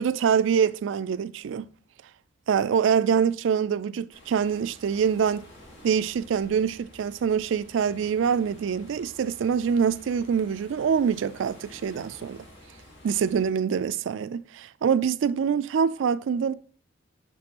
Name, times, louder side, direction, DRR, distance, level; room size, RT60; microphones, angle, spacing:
voice 1, 0.0-1.7 2.5-5.5 5.8-12.4 13.0-16.5, right 7 dB, 80° right, 0.3 m, -25 dB
sound 1, 4.1-13.5, left 1 dB, 70° left, 1.8 m, -50 dB
6.6 x 6.0 x 2.9 m
head